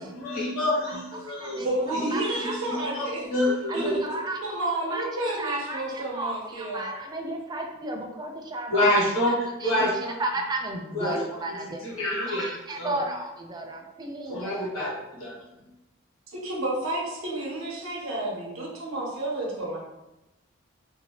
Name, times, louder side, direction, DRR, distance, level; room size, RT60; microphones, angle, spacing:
voice 1, 0.0-1.7 1.9-4.0 8.7-10.2 10.9-11.2 11.5-12.4 12.8-13.0 14.3-15.6, left 1 dB, 90° left, -7 dB, 1.2 m, -27 dB
voice 2, 0.9-1.7 2.1-2.5 3.7-4.6 4.9-5.0 5.4-9.1 9.6-9.9 10.2-11.8 12.3-14.7, right 2 dB, 20° right, 2 dB, 0.4 m, -34 dB
voice 3, 1.6-3.2 3.7-3.8 4.4-6.8 16.3-19.8, right 1 dB, 80° right, -4 dB, 0.8 m, -30 dB
2.7 x 2.6 x 2.8 m, 0.98 s
head